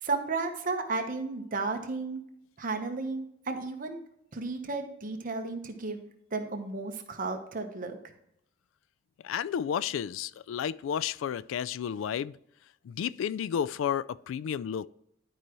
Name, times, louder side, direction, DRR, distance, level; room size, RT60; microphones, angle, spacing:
voice 1, 0.0-2.2 2.6-4.0 4.3-6.0 6.3-8.0, right 3 dB, 45° right, 1.0 m, -33 dB
voice 2, 9.2-12.4 12.8-14.9, left 8 dB, 90° left, 0.3 m, -32 dB
11.5 x 4.8 x 3.0 m
head